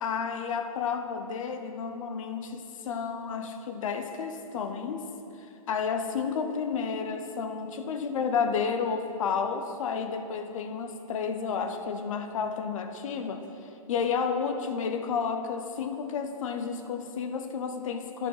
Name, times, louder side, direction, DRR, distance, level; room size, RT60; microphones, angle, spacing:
voice 1, 0.0-5.1 5.7-13.5 13.9-18.3, left 6 dB, 60° left, 8 dB, 1.0 m, -31 dB
10.0 x 6.9 x 5.7 m, 2.7 s
hypercardioid pair, 145°, 19 cm